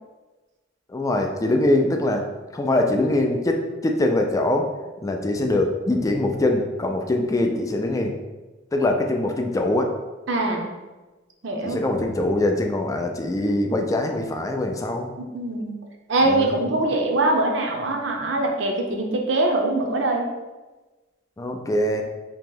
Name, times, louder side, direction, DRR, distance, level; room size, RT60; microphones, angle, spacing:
voice 1, 0.9-2.3 2.5-4.7 5.0-8.1 8.7-9.9 11.6-15.1 16.2-16.6 21.4-22.0, left 1 dB, 20° left, 3 dB, 0.3 m, -23 dB
voice 2, 10.3-10.7 11.4-11.8 15.2-15.7 16.1-20.3, right 2 dB, 70° right, 2 dB, 0.6 m, -23 dB
2.9 x 2.8 x 3.7 m, 1.2 s
head